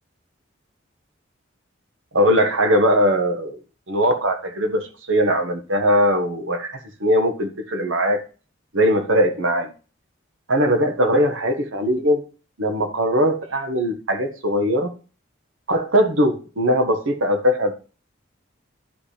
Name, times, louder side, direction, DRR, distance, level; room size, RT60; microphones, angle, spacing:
voice 1, 2.1-3.6 3.9-8.2 8.7-9.7 10.5-12.2 12.6-14.9 15.7-17.7, equal, 85° right, 1.4 m, -20 dB
10.5 x 5.4 x 3.3 m
head